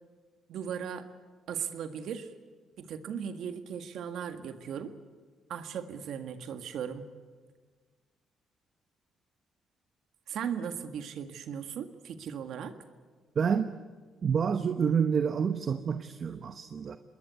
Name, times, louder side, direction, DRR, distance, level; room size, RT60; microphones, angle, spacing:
voice 1, 0.5-1.1 1.5-2.3 2.8-4.9 5.5-7.1 10.3-12.7, right 8 dB, 75° right, 8 dB, 1.8 m, -37 dB
voice 2, 13.3-13.7 14.2-17.0, right 6 dB, 50° right, 9 dB, 1.0 m, -28 dB
26.5 x 21.0 x 8.3 m, 1.5 s
cardioid pair, 90°, 0 cm